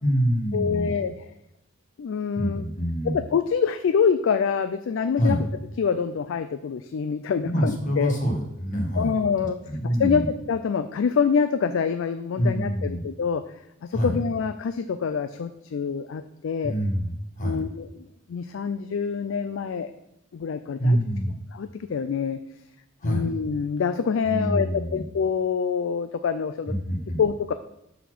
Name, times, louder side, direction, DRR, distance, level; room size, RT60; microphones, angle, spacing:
voice 1, 0.0-0.9 2.4-3.2 5.2-5.4 7.5-9.2 9.7-10.3 12.4-13.0 13.9-14.2 16.6-17.6 20.8-21.3 23.0-23.3 24.2-25.0 26.7-27.2, equal, 40° left, 1 dB, 1.5 m, -25 dB
voice 2, 0.5-1.3 2.0-2.6 3.0-5.5 5.8-8.1 9.0-9.6 9.8-13.4 13.8-16.7 17.4-19.9 20.3-21.0 21.5-22.4 23.0-26.7 27.2-27.5, left 6 dB, 65° left, 9 dB, 0.3 m, -26 dB
6.8 x 4.2 x 6.1 m, 0.81 s
head